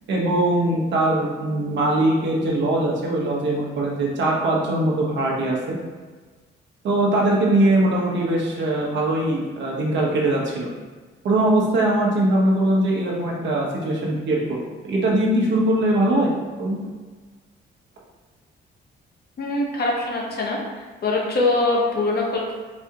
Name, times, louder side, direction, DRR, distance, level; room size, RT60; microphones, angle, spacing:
voice 1, 0.1-5.8 6.8-10.7 11.2-14.4 14.8-16.3 16.6-16.8, right 1 dB, 65° right, -3 dB, 0.9 m, -21 dB
voice 2, 19.4-20.6 21.0-22.5, left 2 dB, 55° left, -2 dB, 0.9 m, -22 dB
4.1 x 2.4 x 2.8 m, 1.4 s
cardioid pair, 90°, 20 cm